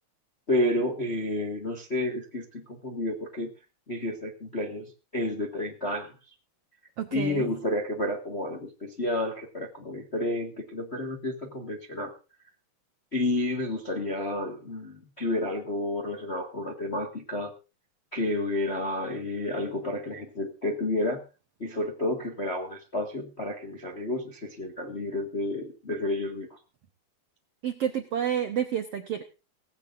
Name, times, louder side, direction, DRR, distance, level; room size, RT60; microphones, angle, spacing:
voice 1, 0.5-3.5 3.9-4.8 5.1-6.1 7.1-12.1 13.1-17.5 18.1-21.2 21.6-26.6, left 1 dB, 40° left, 3 dB, 0.9 m, -30 dB
voice 2, 7.0-7.5 27.6-29.2, right 9 dB, 70° right, 7 dB, 1.4 m, -29 dB
18.0 x 16.0 x 2.6 m, 0.31 s
omnidirectional pair, 4.2 m